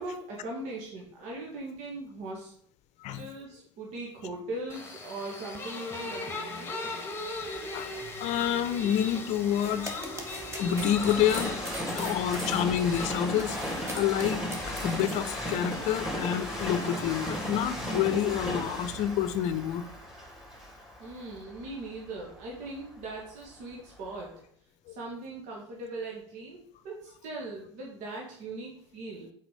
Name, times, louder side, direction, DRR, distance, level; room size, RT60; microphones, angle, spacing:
voice 1, 0.0-2.5 3.1-7.1 21.0-24.3 24.9-29.3, right 2 dB, 55° right, -2 dB, 1.8 m, -40 dB
sound 1, 4.7-18.9, left 2 dB, 15° left, 1.5 m, -41 dB
Train, 7.6-23.5 24.1-24.2, equal, 5° right, 2.7 m, -36 dB
voice 2, 8.2-9.9 10.6-11.6 11.9-14.5 14.8-19.9 24.9-25.0, left 10 dB, 50° left, 12 dB, 0.7 m, -28 dB
sound 2, 9.4-15.2, right 1 dB, 20° right, 1.9 m, -40 dB
6.0 x 4.9 x 5.2 m, 0.63 s
hypercardioid pair, 80°, 15 cm